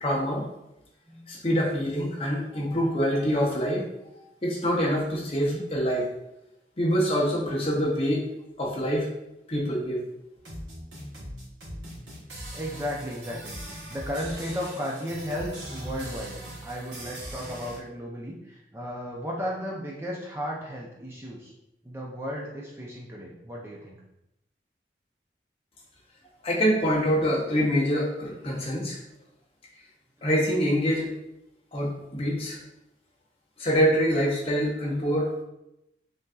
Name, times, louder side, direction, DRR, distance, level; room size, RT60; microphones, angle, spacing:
voice 1, 0.0-0.5 1.3-3.9 4.4-6.1 6.8-8.3 8.6-9.1 9.5-10.0 26.4-29.0 30.2-31.1 31.7-32.6 33.6-35.4, equal, 35° left, -2 dB, 0.8 m, -25 dB
voice 2, 1.1-1.4 2.7-3.0 5.4-5.6 12.5-21.5 21.8-24.0 30.5-30.6, equal, 15° right, -2 dB, 0.4 m, -35 dB
sound 1, 10.4-17.8, equal, 85° right, 1.1 m, -40 dB
5.3 x 2.5 x 2.3 m, 0.87 s
head